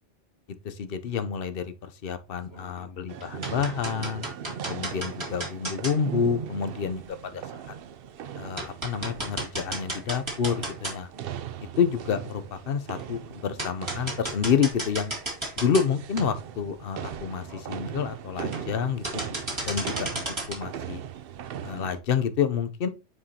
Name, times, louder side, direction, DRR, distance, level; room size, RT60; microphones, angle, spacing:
voice 1, 0.6-4.3 4.7-7.4 8.3-11.1 11.8-15.1 15.6-19.2 19.7-21.0 21.6-22.9, left 7 dB, 55° left, 0.8 m, -28 dB
sound 1, 2.5-2.9 3.2-5.9 7.0-7.1 7.7-7.8 8.2-8.3 8.6-11.2 11.7-11.8 13.0-13.1 13.6-15.9 16.2-16.3 16.8-16.9 17.1-17.2 17.5-17.8 18.4-18.8 19.0-20.6, right 1 dB, 25° right, 2.4 m, -34 dB
sound 2, 3.1-22.0, right 9 dB, 60° right, 0.7 m, -39 dB
9.7 x 4.7 x 2.8 m
omnidirectional pair, 1.2 m